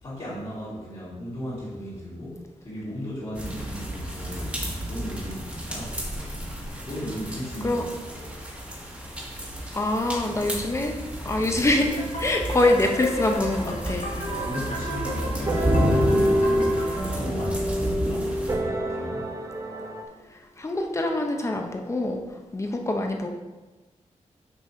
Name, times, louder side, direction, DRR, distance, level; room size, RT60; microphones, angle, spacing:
voice 1, 0.0-4.5 4.9-6.3 6.9-7.8 8.1-8.4 14.4-19.4, equal, 45° left, -13 dB, 2.4 m, -36 dB
sound 1, 3.3-18.6, equal, 10° right, 1.3 m, -31 dB
voice 2, 9.7-11.0 11.2-14.1 20.6-22.2 22.5-23.3, left 2 dB, 25° left, 3 dB, 0.8 m, -24 dB
sound 2, 11.6-17.1, left 1 dB, 90° left, 1.6 m, -34 dB
sound 3, 14.3-20.0, right 1 dB, 25° right, 0.6 m, -27 dB
6.2 x 5.3 x 4.3 m, 1.2 s
wide cardioid pair, 155°, 12 cm